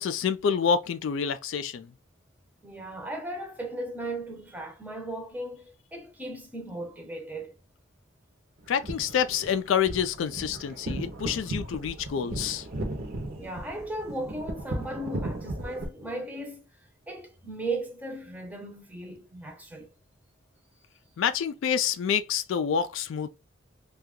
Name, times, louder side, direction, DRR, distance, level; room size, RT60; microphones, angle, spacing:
voice 1, 0.0-1.9 8.7-12.7 21.2-23.3, left 7 dB, 65° left, 0.3 m, -27 dB
voice 2, 2.6-7.5 13.4-16.6 17.1-19.9, right 2 dB, 10° right, 0.7 m, -36 dB
sound 1, 8.6-15.8, right 1 dB, 50° right, 0.7 m, -36 dB
2.8 x 2.3 x 3.5 m
head